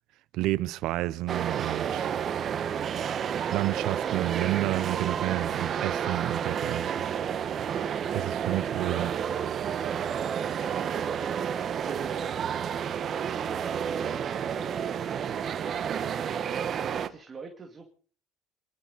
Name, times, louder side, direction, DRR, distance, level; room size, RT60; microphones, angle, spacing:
voice 1, 0.3-2.1 3.5-7.0 8.1-9.1, right 17 dB, 60° right, 0.7 m, -30 dB
sound 1, 1.3-17.1, right 8 dB, 40° right, 1.2 m, -30 dB
voice 2, 10.6-17.9, right 4 dB, 25° right, 2.4 m, -44 dB
28.5 x 11.5 x 4.1 m
cardioid pair, 120°, 0 cm